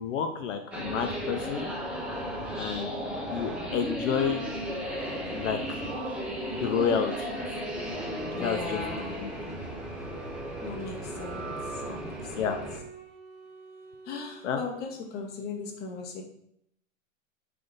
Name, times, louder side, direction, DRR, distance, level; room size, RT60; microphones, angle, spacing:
voice 1, 0.0-1.7 2.6-3.0 3.3-4.4 5.3-5.6 6.5-7.3 8.3-8.8 9.2-9.6 12.3-12.6 14.4-14.6, left 7 dB, 65° left, 6 dB, 0.6 m, -30 dB
sound 1, 0.7-12.8, equal, 5° right, 0.3 m, -35 dB
sound 2, 4.2-12.4, right 4 dB, 55° right, 0.9 m, -44 dB
voice 2, 8.3-9.3 10.6-12.5 14.0-16.2, left 4 dB, 25° left, 1 dB, 0.9 m, -38 dB
Wind instrument woodwind instrument, 10.6-15.0, right 3 dB, 25° right, 0.9 m, -48 dB
3.6 x 3.3 x 3.9 m, 0.74 s
hypercardioid pair, 125°, 41 cm